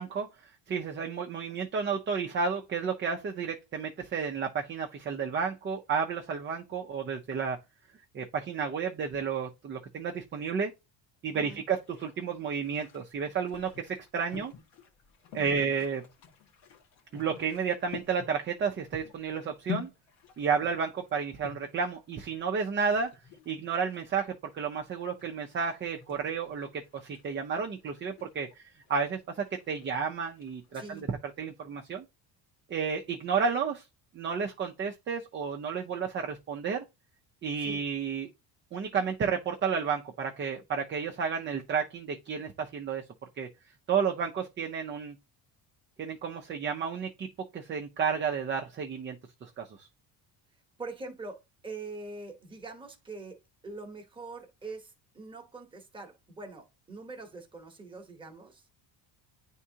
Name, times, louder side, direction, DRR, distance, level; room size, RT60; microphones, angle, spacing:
voice 1, 0.0-7.6 8.1-10.7 11.2-14.5 15.3-16.0 17.1-19.9 20.4-23.1 23.5-28.6 28.9-32.0 32.7-33.9 34.1-36.8 37.4-38.3 38.7-43.0 43.4-43.5 43.9-45.1 46.0-47.3 47.5-49.9, right 6 dB, 25° right, 0.5 m, -32 dB
sound 1, 11.4-31.0, left 8 dB, 80° left, 1.9 m, -48 dB
voice 2, 30.7-31.0 37.6-37.8 50.8-53.4 53.6-58.6, right 3 dB, 10° right, 1.0 m, -43 dB
9.7 x 3.6 x 2.8 m
cardioid pair, 170°, 44 cm